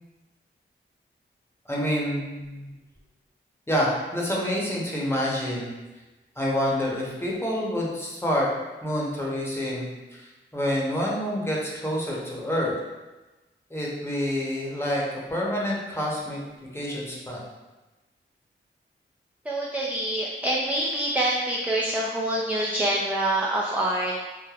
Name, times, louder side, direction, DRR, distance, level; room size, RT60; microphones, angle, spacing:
voice 1, 1.7-2.7 3.7-5.7 6.4-8.5 8.8-12.7 13.7-15.0 15.3-17.4, equal, 10° left, -4 dB, 0.8 m, -28 dB
voice 2, 19.5-24.1, right 1 dB, 5° right, -4 dB, 0.4 m, -26 dB
3.2 x 2.1 x 2.3 m, 1.1 s
cardioid pair, 45°, 21 cm